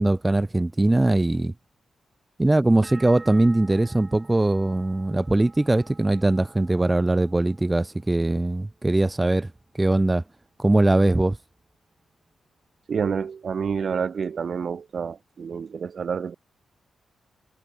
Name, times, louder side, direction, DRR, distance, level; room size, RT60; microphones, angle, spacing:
voice 1, 0.0-1.5 2.4-9.5 9.8-10.2 10.6-11.4, right 2 dB, 15° right, 0.6 m, -21 dB
sound 1, 2.8-8.5 8.8-9.5, right 3 dB, 35° right, 7.0 m, -49 dB
voice 2, 12.9-16.4, right 6 dB, 55° right, 0.3 m, -28 dB
cardioid pair, 85°, 0 cm